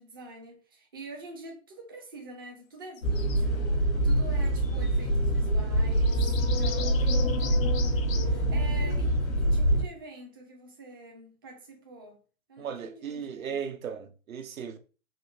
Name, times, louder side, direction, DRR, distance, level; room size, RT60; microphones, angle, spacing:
voice 1, 0.0-12.2 12.5-13.7, right 2 dB, 20° right, 0.3 m, -46 dB
sound 1, 3.0-9.8, right 1 dB, 85° left, 1.0 m, -25 dB
sound 2, 3.0-3.4 4.5-5.0 5.9-8.2, left 7 dB, 70° left, 0.6 m, -41 dB
voice 2, 12.6-14.8, right 7 dB, 75° right, 0.7 m, -36 dB
3.7 x 2.4 x 2.4 m
figure-of-eight pair, 115°, 42 cm